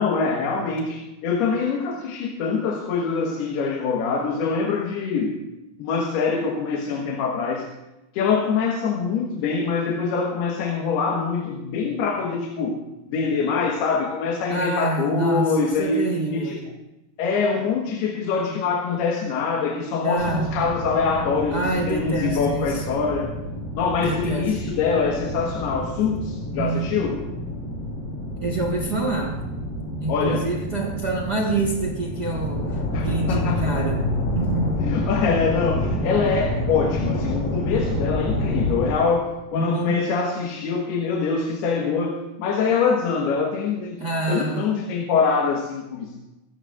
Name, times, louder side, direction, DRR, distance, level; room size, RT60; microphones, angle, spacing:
voice 1, 0.0-5.4 5.8-7.7 8.1-12.8 13.1-16.6 17.2-23.3 23.7-27.2 30.1-30.5 32.9-33.8 34.8-44.0 44.3-46.2, left 5 dB, 80° left, 0 dB, 3.4 m, -24 dB
voice 2, 14.5-16.6 20.0-20.5 21.5-22.8 24.0-24.6 26.5-26.9 28.4-29.4 30.0-34.8 39.5-39.9 44.0-44.7, right 3 dB, 80° right, 0 dB, 0.9 m, -27 dB
sound 1, 20.2-38.9, left 1 dB, 45° left, 4.6 m, -28 dB
24.0 x 15.5 x 2.5 m, 0.97 s
omnidirectional pair, 4.5 m